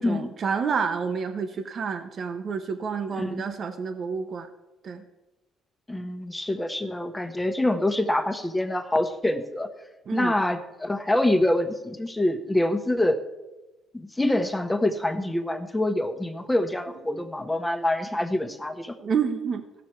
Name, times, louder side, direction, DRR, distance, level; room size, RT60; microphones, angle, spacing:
voice 1, 0.0-4.5 4.8-5.0 10.1-10.4 19.0-19.6, right 6 dB, 55° right, 6 dB, 1.0 m, -29 dB
voice 2, 3.1-3.4 5.9-9.7 10.1-13.2 13.9-19.0, left 1 dB, 10° left, 7 dB, 1.3 m, -25 dB
15.5 x 6.2 x 4.6 m, 1.0 s
supercardioid pair, 75°, 0 cm